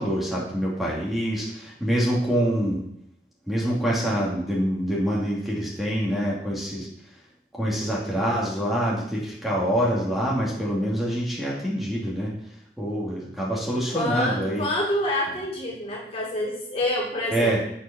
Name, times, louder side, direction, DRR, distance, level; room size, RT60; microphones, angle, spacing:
voice 1, 0.0-2.8 3.5-6.9 7.6-12.3 12.8-14.7 17.3-17.6, equal, ahead, -6 dB, 2.6 m, -25 dB
voice 2, 13.9-17.6, left 1 dB, 35° left, -2 dB, 2.9 m, -27 dB
8.5 x 7.3 x 6.1 m, 0.72 s
head